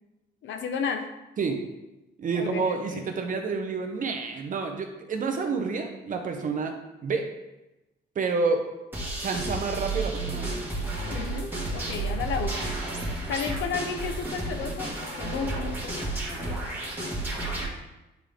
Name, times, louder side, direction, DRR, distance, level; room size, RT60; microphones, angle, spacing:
voice 1, 0.4-1.1 2.3-3.0 11.1-12.8 13.3-16.1, left 6 dB, 80° left, 6 dB, 0.8 m, -33 dB
voice 2, 2.2-6.7 7.0-7.3 8.1-8.6 9.2-10.5, right 4 dB, 45° right, 4 dB, 0.9 m, -29 dB
sound 1, 8.9-17.7, right 2 dB, 10° right, 1.8 m, -32 dB
9.2 x 3.8 x 3.5 m, 0.97 s
cardioid pair, 140°, 19 cm